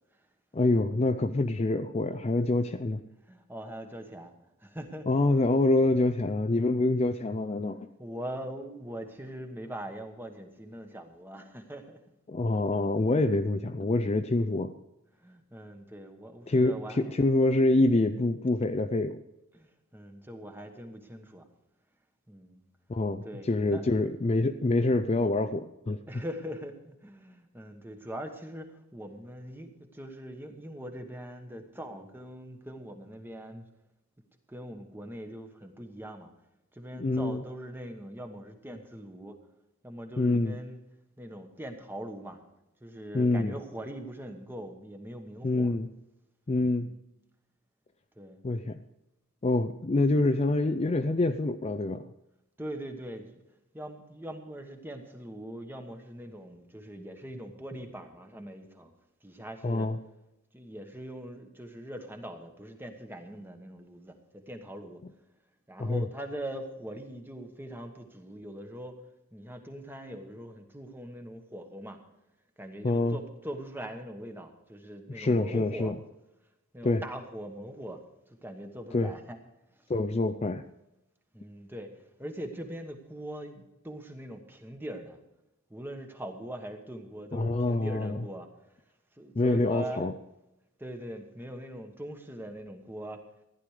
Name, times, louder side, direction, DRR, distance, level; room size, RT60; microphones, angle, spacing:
voice 1, 0.5-3.0 5.1-7.9 12.3-14.7 16.5-19.2 22.9-26.0 37.0-37.4 40.2-40.6 43.1-43.5 45.4-45.9 46.5-46.9 48.4-48.8 49.4-52.1 59.6-60.0 65.8-66.0 72.8-73.2 75.1-76.0 76.8-77.0 78.9-79.1 79.9-80.6 87.3-88.2 89.4-90.1, left 2 dB, 30° left, 9 dB, 0.4 m, -26 dB
voice 2, 3.3-4.3 4.6-5.1 8.0-12.0 15.2-17.3 19.5-21.5 22.3-22.6 23.2-23.9 26.1-33.7 34.5-36.3 36.7-39.4 39.8-40.8 41.2-42.4 42.8-45.7 46.8-47.0 48.2-48.4 52.6-53.4 53.7-58.9 59.2-59.9 60.5-65.0 65.7-69.0 69.3-72.0 72.6-75.9 76.7-79.4 79.8-79.9 81.3-85.2 85.7-88.5 89.1-90.1 90.8-93.2, right 1 dB, 10° right, 5 dB, 1.2 m, -42 dB
15.0 x 11.0 x 4.9 m, 0.90 s
head